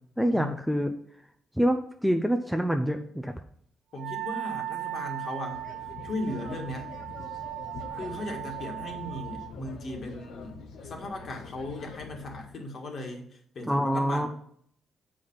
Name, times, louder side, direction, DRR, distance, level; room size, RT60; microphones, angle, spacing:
voice 1, 0.2-1.0 1.6-3.3 13.7-14.3, equal, ahead, 5 dB, 0.5 m, -26 dB
voice 2, 3.9-5.6 6.0-6.9 8.0-13.3 13.5-14.3, left 1 dB, 45° left, 2 dB, 1.7 m, -37 dB
Wind instrument woodwind instrument, 4.0-9.5, right 13 dB, 60° right, 0.4 m, -37 dB
sound 1, 5.5-12.5, left 4 dB, 75° left, 1.0 m, -45 dB
7.8 x 5.0 x 5.6 m, 0.63 s
cardioid pair, 160°, 0 cm